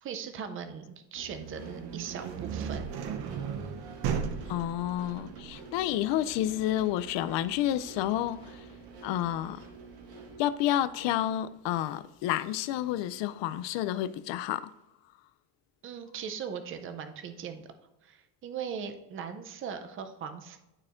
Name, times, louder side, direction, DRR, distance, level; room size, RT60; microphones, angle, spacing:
voice 1, 0.0-2.8 15.8-17.6 18.0-20.6, right 7 dB, 30° right, 0.5 m, -39 dB
sound 1, 1.1-10.4, right 4 dB, 80° right, 1.7 m, -49 dB
sound 2, 1.2-10.9, right 7 dB, 60° right, 0.8 m, -38 dB
voice 2, 4.5-8.7 9.0-9.6 10.4-14.7, left 12 dB, 75° left, 0.5 m, -30 dB
12.0 x 4.3 x 2.5 m
cardioid pair, 175°, 44 cm